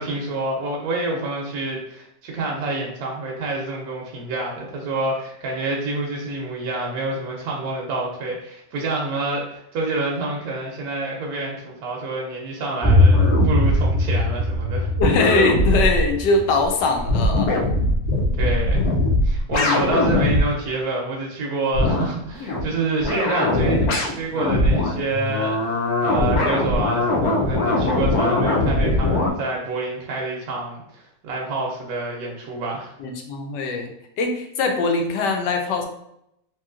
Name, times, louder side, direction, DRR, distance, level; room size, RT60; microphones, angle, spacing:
voice 1, 0.0-14.9 18.4-18.9 19.2-23.9 24.1-32.9, right 2 dB, 70° right, -1 dB, 1.0 m, -27 dB
sound 1, 12.8-18.4, left 1 dB, ahead, 0.8 m, -21 dB
sound 2, 13.1-13.8 14.5-14.6 15.0-16.1 16.6-16.7 17.0-20.4 21.7-22.1 22.4-22.6 23.0-29.3, left 1 dB, 70° left, 1.0 m, -21 dB
voice 2, 15.0-17.5 19.5-19.8 33.0-33.9 34.2-35.8, left 3 dB, 85° left, 4 dB, 1.2 m, -22 dB
3.0 x 2.9 x 2.3 m, 0.77 s
omnidirectional pair, 1.8 m